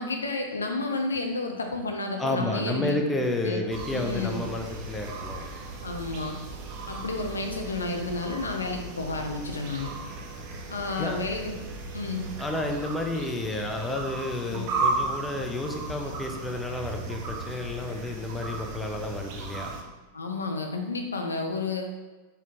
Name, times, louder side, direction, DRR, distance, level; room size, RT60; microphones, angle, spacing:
voice 1, 0.0-3.6 3.9-4.4 5.8-6.4 6.9-9.9 10.7-11.5 11.9-12.3 14.5-14.7 20.1-21.9, left 3 dB, 75° left, 3 dB, 0.4 m, -31 dB
voice 2, 2.2-5.4 11.0-11.2 12.4-19.7, left 2 dB, 10° left, 2 dB, 0.4 m, -31 dB
sound 1, 3.7-19.8, right 3 dB, 40° right, 0.5 m, -36 dB
4.1 x 2.7 x 3.0 m, 1.2 s
figure-of-eight pair, 90°, 0 cm